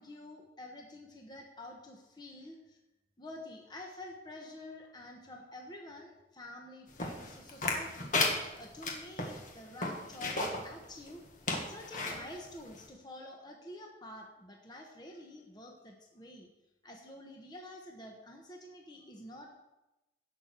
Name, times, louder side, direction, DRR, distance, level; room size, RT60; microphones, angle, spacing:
voice 1, 0.0-2.8 3.2-8.2 8.5-11.2 11.6-16.5 16.8-19.6, left 1 dB, 25° left, 1 dB, 1.2 m, -48 dB
sound 1, 7.0-10.7 11.1-11.2 11.4-12.2 12.8-12.9, left 3 dB, 45° left, 1.8 m, -33 dB
17.0 x 6.6 x 4.6 m, 0.99 s
head